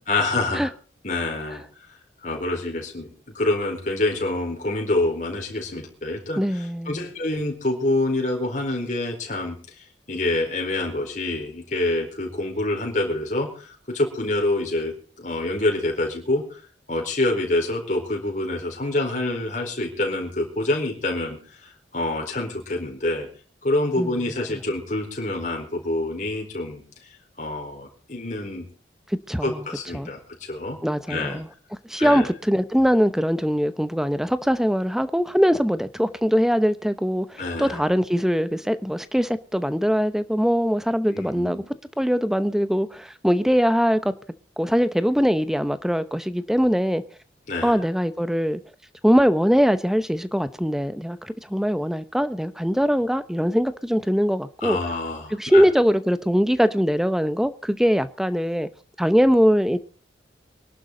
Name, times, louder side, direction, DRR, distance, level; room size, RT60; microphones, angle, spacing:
voice 1, 0.1-0.7 1.0-1.6 2.2-6.4 6.9-9.6 10.1-16.6 16.9-23.3 23.6-26.8 27.4-28.6 29.4-30.8 31.1-31.4 32.0-32.3 37.4-37.8 41.1-41.7 47.5-47.8 54.6-55.7, left 2 dB, 40° left, 4.4 m, -26 dB
voice 2, 6.4-7.1 24.0-24.1 29.1-29.7 29.9-30.1 30.8-31.5 31.9-41.6 42.0-44.1 44.6-47.0 47.6-48.6 49.0-54.8 55.3-58.7 59.0-59.8, equal, ahead, 0.8 m, -22 dB
24.0 x 11.5 x 3.9 m
head